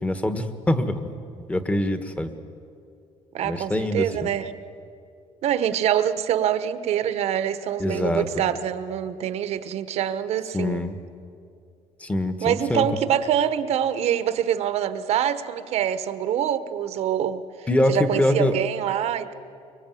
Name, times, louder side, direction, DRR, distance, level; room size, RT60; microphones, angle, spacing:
voice 1, 0.0-1.1 1.5-2.3 3.4-4.3 7.8-8.4 10.5-11.0 12.0-12.9 17.7-18.5, left 1 dB, 10° left, 9 dB, 1.4 m, -24 dB
voice 2, 3.3-4.5 5.4-10.8 12.4-17.4 17.9-19.3, right 10 dB, 60° right, 11 dB, 1.2 m, -25 dB
24.5 x 24.0 x 9.3 m, 2.4 s
cardioid pair, 155°, 12 cm